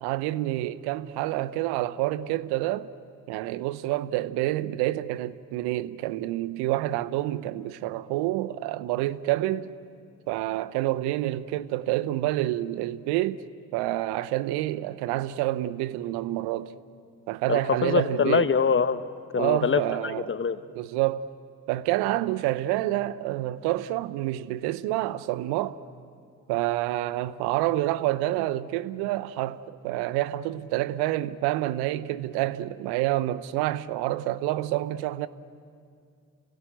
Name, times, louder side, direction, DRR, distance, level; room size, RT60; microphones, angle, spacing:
voice 1, 0.0-2.9 3.3-9.7 10.3-13.4 13.7-16.7 17.3-18.5 19.4-20.3 20.7-21.3 21.7-25.8 26.5-35.3, right 15 dB, 70° right, 0.9 m, -28 dB
voice 2, 17.5-19.0 19.3-19.8 20.3-20.6, left 6 dB, 30° left, 1.0 m, -23 dB
29.5 x 17.5 x 9.2 m
hypercardioid pair, 50°, 41 cm